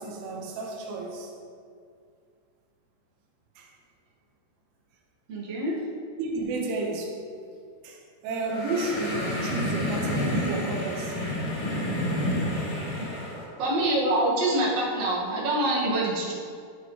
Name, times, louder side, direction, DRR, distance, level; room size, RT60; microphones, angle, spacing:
voice 1, 0.0-1.3 3.6-3.7 6.2-7.2 7.8-11.3 13.1-13.2, right 2 dB, 75° right, -1 dB, 3.7 m, -32 dB
voice 2, 5.3-5.8 13.0-13.1 13.6-16.3, right 1 dB, 60° right, -5 dB, 1.8 m, -25 dB
sound 1, 8.4-13.4, left 1 dB, 45° left, 4.0 m, -29 dB
12.0 x 8.8 x 3.2 m, 2.3 s
omnidirectional pair, 5.8 m